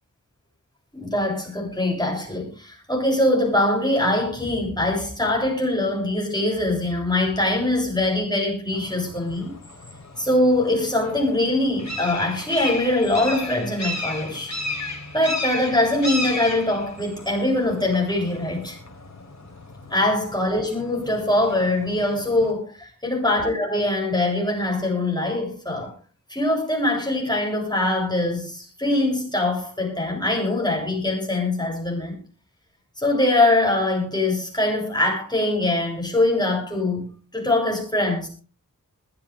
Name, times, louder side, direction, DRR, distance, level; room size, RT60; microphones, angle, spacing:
voice 1, 0.9-9.5 10.2-14.5 15.1-18.8 19.9-25.9 26.3-32.2 33.0-38.3, left 1 dB, 15° left, -1 dB, 7.7 m, -23 dB
sound 1, 8.7-22.5, left 2 dB, 55° left, 3.9 m, -35 dB
20.5 x 14.0 x 3.6 m, 0.36 s
wide cardioid pair, 70°, 32 cm